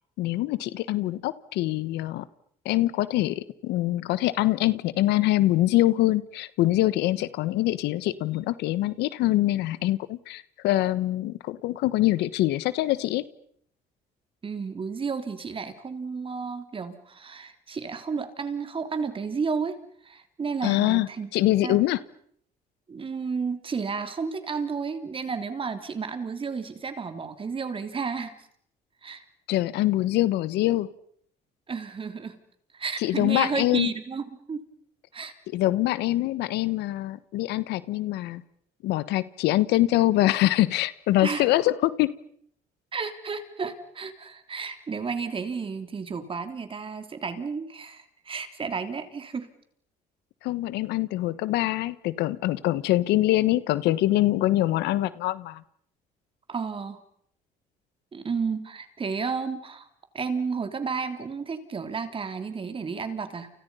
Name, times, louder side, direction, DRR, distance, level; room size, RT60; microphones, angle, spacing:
voice 1, 0.2-2.2 2.6-13.2 20.6-22.0 29.5-30.9 33.0-33.9 35.5-38.4 38.8-42.2 50.4-55.6, left 16 dB, 85° left, 16 dB, 1.3 m, -24 dB
voice 2, 14.4-19.8 20.0-21.3 21.6-21.8 22.9-28.4 29.0-29.2 31.7-32.4 32.7-34.7 35.1-35.3 41.2-41.5 42.9-49.5 56.5-57.0 58.1-59.9 60.1-63.5, right 5 dB, 30° right, 8 dB, 3.4 m, -32 dB
30.0 x 29.5 x 5.6 m, 0.65 s
cardioid pair, 110°, 17 cm